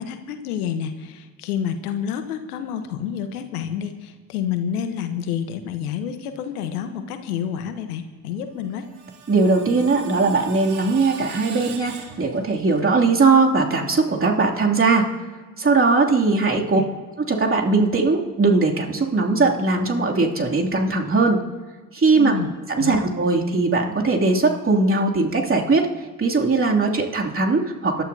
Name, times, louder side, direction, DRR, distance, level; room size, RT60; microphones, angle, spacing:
voice 1, 0.0-8.9 22.1-22.5 22.8-23.0, left 8 dB, 85° left, 8 dB, 1.1 m, -29 dB
Screech, 8.5-12.8, right 7 dB, 75° right, 2.3 m, -41 dB
voice 2, 9.3-15.1 15.6-16.8 17.2-21.4 21.9-22.3 22.7-25.9 26.2-28.0, right 3 dB, 30° right, -1 dB, 2.7 m, -19 dB
26.5 x 12.5 x 2.8 m, 1.4 s
hypercardioid pair, 60°, 44 cm